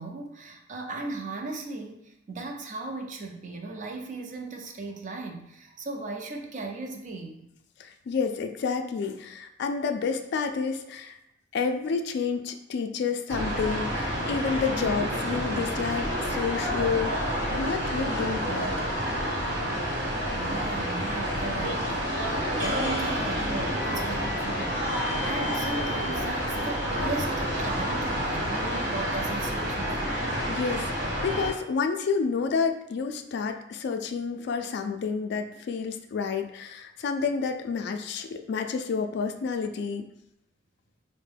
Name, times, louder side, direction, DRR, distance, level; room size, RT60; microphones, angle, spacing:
voice 1, 0.0-7.5 20.3-30.1, right 3 dB, 40° right, 2 dB, 0.5 m, -37 dB
voice 2, 7.8-11.2 11.5-18.7 30.5-40.1, left 5 dB, 60° left, 6 dB, 0.3 m, -30 dB
sound 1, 13.3-31.5, equal, 65° right, 1.1 m, -29 dB
4.4 x 2.1 x 3.3 m, 0.82 s
head